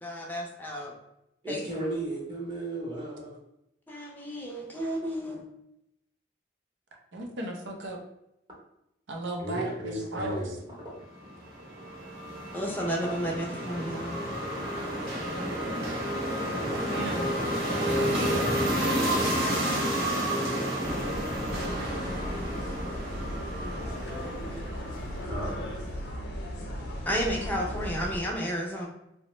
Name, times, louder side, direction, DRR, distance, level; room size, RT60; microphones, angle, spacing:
voice 1, 0.0-0.9 1.5-1.6 3.9-5.4 12.5-14.2 27.1-28.9, equal, 10° left, -2 dB, 0.4 m, -32 dB
voice 2, 1.4-3.4 9.4-11.0 25.3-25.6, right 1 dB, 25° right, -4 dB, 0.8 m, -34 dB
voice 3, 7.1-8.0 9.1-10.4 16.9-17.3 17.6-18.9, right 1 dB, 85° right, 1 dB, 0.6 m, -36 dB
sound 1, 11.2-25.6, equal, 55° right, 0.9 m, -30 dB
sound 2, 20.8-28.2, equal, 75° left, 0.6 m, -36 dB
2.8 x 2.1 x 3.0 m, 0.84 s
head